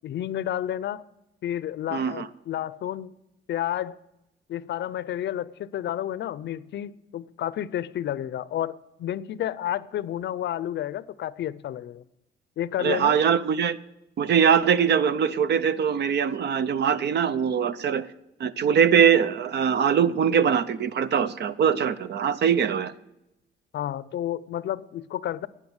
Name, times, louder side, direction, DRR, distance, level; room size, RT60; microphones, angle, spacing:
voice 1, 0.0-1.0 1.4-3.2 3.5-4.0 4.5-12.0 12.6-13.2 23.7-25.5, left 11 dB, 65° left, 18 dB, 0.5 m, -31 dB
voice 2, 1.9-2.3 12.8-13.8 14.2-18.1 18.4-22.9, right 7 dB, 60° right, 15 dB, 0.7 m, -22 dB
10.5 x 9.4 x 8.0 m, 0.89 s
cardioid pair, 90°, 20 cm